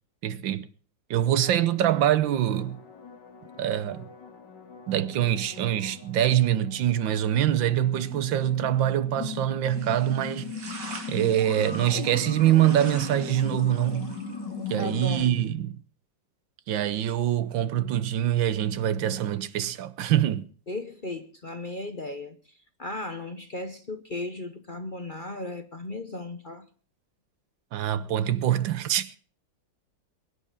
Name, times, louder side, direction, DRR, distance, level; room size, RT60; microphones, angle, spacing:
voice 1, 0.2-0.7 1.1-2.8 3.6-4.1 4.9-10.5 11.1-14.2 14.7-15.8 16.7-20.5 27.7-29.2, right 11 dB, 85° right, 1.6 m, -24 dB
sound 1, 1.4-15.2, left 6 dB, 70° left, 2.7 m, -39 dB
sound 2, 9.7-15.3, right 4 dB, 65° right, 2.8 m, -45 dB
voice 2, 14.8-15.4 20.7-26.7, left 2 dB, 35° left, 0.8 m, -36 dB
22.5 x 9.8 x 5.0 m
omnidirectional pair, 2.0 m